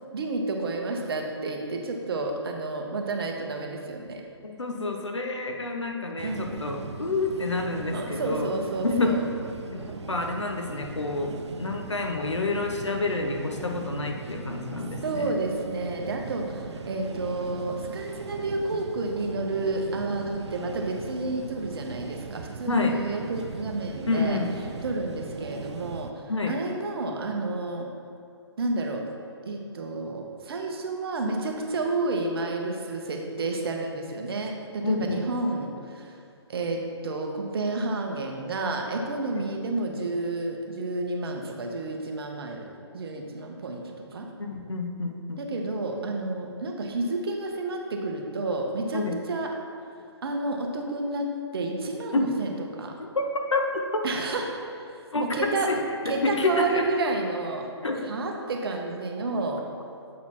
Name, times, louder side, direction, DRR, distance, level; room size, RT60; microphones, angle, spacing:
voice 1, 0.1-4.2 6.2-6.6 7.9-9.2 15.0-24.4 24.8-27.9 28.6-29.0 29.4-36.2 36.5-42.7 42.9-44.3 45.4-49.5 50.2-52.9 54.0-55.7 56.0-57.7 58.0-59.6, right 2 dB, 55° right, 2 dB, 1.0 m, -30 dB
voice 2, 4.4-8.5 8.8-9.2 9.7-15.3 22.7-23.0 24.1-24.5 26.3-26.5 34.8-35.2 44.4-45.4 48.9-49.2 52.1-52.3 53.1-53.2 53.5-54.0 55.1-55.4 55.7-55.8 56.0-56.8 57.8-58.1, left 3 dB, 85° left, 3 dB, 0.9 m, -28 dB
sound 1, 6.2-26.1, right 4 dB, 75° right, 0.5 m, -39 dB
7.6 x 4.2 x 4.3 m, 2.4 s
figure-of-eight pair, 140°, 15 cm